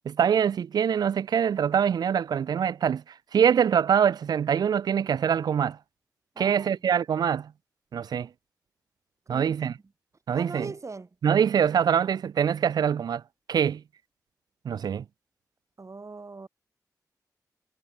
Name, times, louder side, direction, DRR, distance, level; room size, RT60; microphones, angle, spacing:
voice 1, 0.1-3.0 3.3-5.8 6.4-7.5 7.9-8.3 9.3-9.7 10.3-10.7 11.2-13.2 13.5-13.8 14.6-15.0, right 8 dB, 75° right, 0.4 m, -24 dB
voice 2, 6.3-6.8 9.3-9.6 10.3-11.1 15.8-16.5, right 3 dB, 45° right, 2.5 m, -40 dB
cardioid pair, 45°, 7 cm